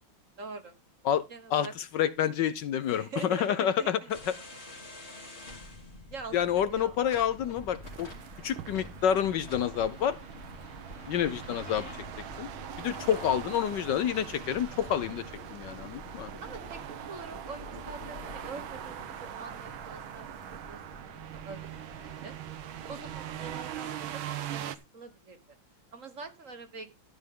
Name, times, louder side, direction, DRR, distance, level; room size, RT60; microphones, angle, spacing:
voice 1, 0.4-0.7 1.3-1.7 2.9-4.1 5.2-5.4 6.1-7.0 16.4-16.8 17.1-20.3 20.7-22.3 22.9-24.2 24.5-24.7 24.9-25.4 25.9-26.9, right 4 dB, 45° right, 1.6 m, -44 dB
voice 2, 1.9-4.0 6.3-8.1 8.4-10.2 11.1-11.9 12.4-12.5 12.8-15.2 15.5-16.3, left 9 dB, 70° left, 1.2 m, -28 dB
sound 1, 4.1-23.8, left 2 dB, 30° left, 2.5 m, -48 dB
sound 2, 7.8-24.8, right 10 dB, 85° right, 1.8 m, -42 dB
13.5 x 8.1 x 3.7 m
omnidirectional pair, 2.2 m